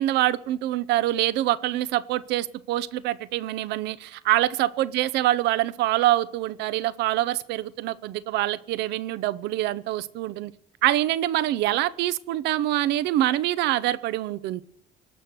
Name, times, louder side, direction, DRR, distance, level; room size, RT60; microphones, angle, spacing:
voice 1, 0.0-10.5 10.8-14.6, right 14 dB, 85° right, 0.7 m, -25 dB
18.0 x 6.4 x 9.4 m
cardioid pair, 110°, 17 cm